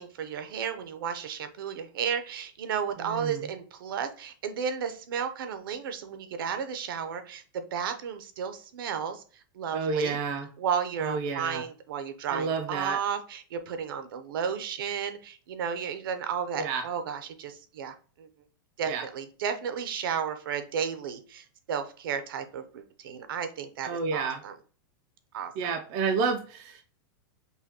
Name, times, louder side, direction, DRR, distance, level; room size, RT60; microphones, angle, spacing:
voice 1, 0.0-10.2 10.6-18.3 18.8-24.5 25.3-25.7, right 7 dB, 70° right, 9 dB, 0.7 m, -33 dB
voice 2, 3.0-3.5 9.7-10.5 11.0-11.6 12.3-13.0 16.6-16.8 18.8-19.0 23.8-24.4 25.6-26.8, right 5 dB, 30° right, 5 dB, 0.3 m, -30 dB
5.5 x 2.2 x 2.8 m, 0.41 s
supercardioid pair, 170°, 12 cm